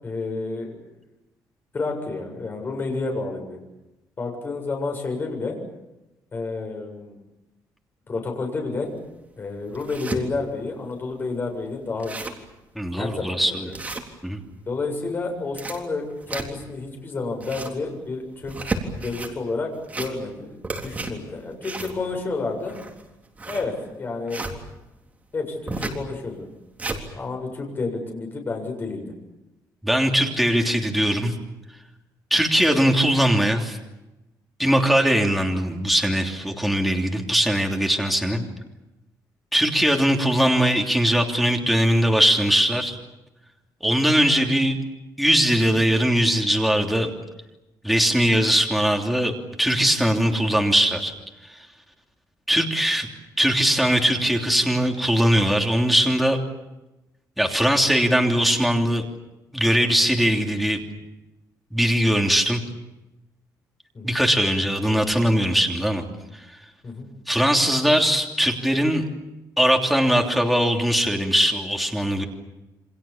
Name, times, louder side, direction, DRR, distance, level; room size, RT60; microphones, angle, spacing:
voice 1, 0.0-0.8 1.7-3.6 4.2-5.6 6.3-7.1 8.1-8.9 9.4-12.2 13.0-13.7 14.7-18.7 19.0-20.6 20.8-22.8 23.5-24.4 25.3-26.5 27.1-29.1 38.2-38.4 63.9-64.2 66.8-67.1, left 3 dB, 30° left, 3 dB, 7.6 m, -30 dB
sound 1, 8.9-9.0 9.5-10.2 10.8-10.9 11.1-11.2 11.6-11.7 11.9-12.5 12.9-13.1 13.7-14.5 15.3-16.8 17.2-17.8 18.4-19.3 19.8-20.4 20.6-24.6 25.7-26.0 26.5-27.0, right 3 dB, 20° right, 3.7 m, -32 dB
voice 2, 12.7-13.7 14.2-14.4 29.8-31.3 32.3-33.8 34.6-38.4 39.5-43.0 43.8-44.8 45.2-47.1 47.8-49.3 49.6-51.1 51.5-51.6 52.5-53.1 53.4-56.4 57.4-59.0 59.5-60.8 61.7-62.6 64.0-66.0 66.3-66.4 67.3-69.0 69.6-72.2, equal, ahead, 1 dB, 3.1 m, -20 dB
29.0 x 26.0 x 7.3 m, 1.0 s
cardioid pair, 150°, 7 cm